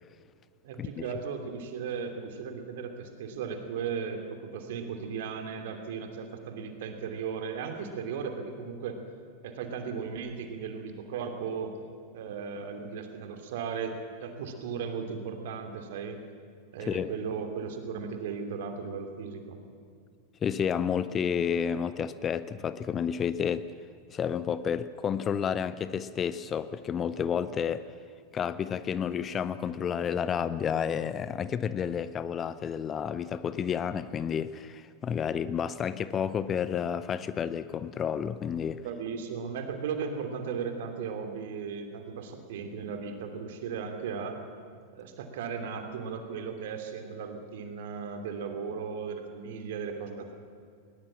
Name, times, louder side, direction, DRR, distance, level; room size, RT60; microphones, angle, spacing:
voice 1, 0.6-9.0 9.4-11.8 12.1-16.2 16.7-19.6 38.8-44.4 44.9-50.3, right 6 dB, 55° right, 6 dB, 2.8 m, -36 dB
voice 2, 16.8-17.1 20.4-23.6 24.1-27.9 28.3-38.8, left 7 dB, 25° left, 15 dB, 0.7 m, -30 dB
20.5 x 19.5 x 7.3 m, 2.2 s
figure-of-eight pair, 90°, 0 cm